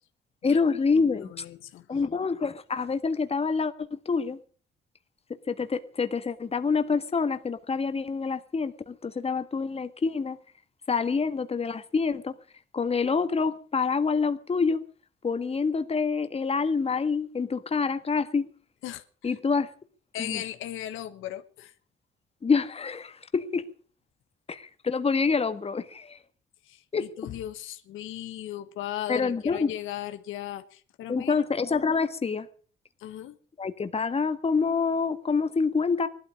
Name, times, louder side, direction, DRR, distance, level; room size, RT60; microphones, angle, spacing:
voice 1, 0.4-1.4 1.9-4.4 5.5-10.4 10.9-12.3 12.7-14.8 15.2-18.5 19.2-19.7 20.2-20.4 22.4-23.6 24.5-26.2 26.9-27.1 29.1-29.7 31.1-32.5 33.6-36.1, left 5 dB, 30° left, 1.5 m, -27 dB
voice 2, 1.2-1.8 18.8-19.3 20.1-21.7 26.7-26.8 27.2-31.4 33.0-33.4, left 12 dB, 85° left, 1.3 m, -37 dB
18.0 x 12.5 x 6.3 m
cardioid pair, 90°, 20 cm